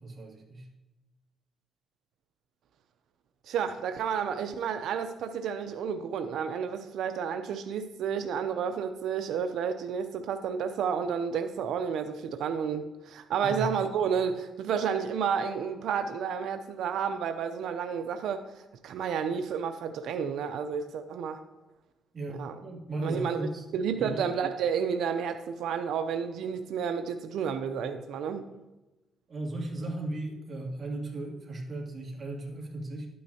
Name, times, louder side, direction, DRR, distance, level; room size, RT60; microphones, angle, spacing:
voice 1, 0.0-0.7 13.4-13.7 22.1-23.6 24.0-24.2 29.3-33.1, right 2 dB, 40° right, -1 dB, 2.7 m, -36 dB
voice 2, 3.5-21.4 22.3-22.5 23.0-28.5, right 7 dB, 80° right, 8 dB, 0.6 m, -31 dB
12.0 x 9.3 x 2.9 m, 1.1 s
cardioid pair, 90°, 0 cm